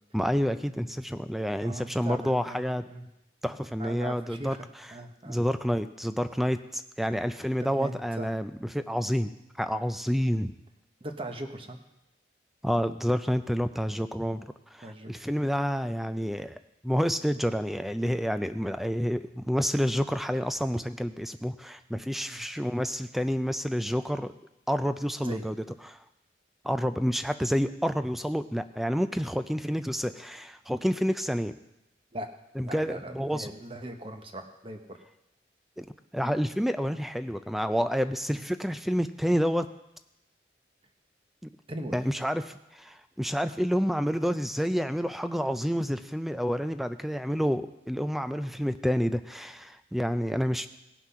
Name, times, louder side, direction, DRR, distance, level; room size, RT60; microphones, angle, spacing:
voice 1, 0.1-2.8 3.4-4.9 5.3-9.3 9.6-10.5 12.6-14.4 14.7-16.6 16.8-24.3 24.7-26.0 26.6-31.5 32.6-33.5 35.8-35.9 36.1-39.7 41.4-41.5 41.9-50.7, equal, ahead, 10 dB, 0.4 m, -29 dB
voice 2, 1.6-3.1 3.8-4.6 4.9-5.4 7.8-8.3 11.0-11.8 14.8-15.1 22.3-22.4 25.2-25.4 32.1-32.3 32.6-35.0 41.7-41.9, right 1 dB, 30° right, 5 dB, 1.0 m, -39 dB
18.0 x 6.1 x 5.6 m, 0.89 s
head